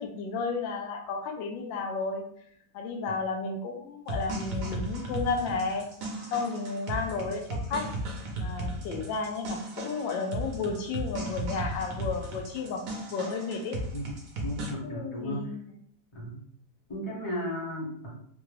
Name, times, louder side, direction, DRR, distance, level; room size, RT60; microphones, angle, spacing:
voice 1, 0.0-2.2 2.7-5.9 6.3-7.8 8.4-12.8 13.1-13.8 14.8-15.7, left 4 dB, 90° left, 2 dB, 1.3 m, -32 dB
sound 1, 4.1-14.7, right 1 dB, 60° right, 1.0 m, -36 dB
voice 2, 14.4-15.5 16.1-16.4 16.9-18.2, equal, 20° left, -5 dB, 0.9 m, -35 dB
3.7 x 2.2 x 3.2 m, 0.65 s
omnidirectional pair, 2.0 m